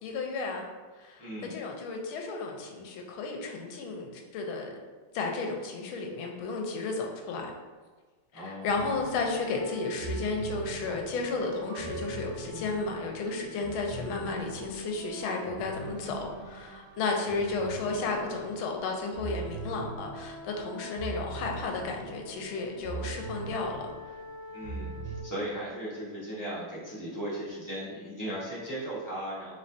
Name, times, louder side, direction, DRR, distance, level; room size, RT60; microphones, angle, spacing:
voice 1, 0.0-0.6 1.0-4.7 5.1-7.5 8.3-23.8, left 3 dB, 80° left, 2 dB, 1.4 m, -33 dB
voice 2, 1.2-1.5 8.3-8.7 24.5-29.5, right 1 dB, 20° left, -10 dB, 0.5 m, -37 dB
sound 1, 8.7-25.2, right 2 dB, 75° right, 1.6 m, -41 dB
4.2 x 3.6 x 2.6 m, 1.4 s
omnidirectional pair, 2.4 m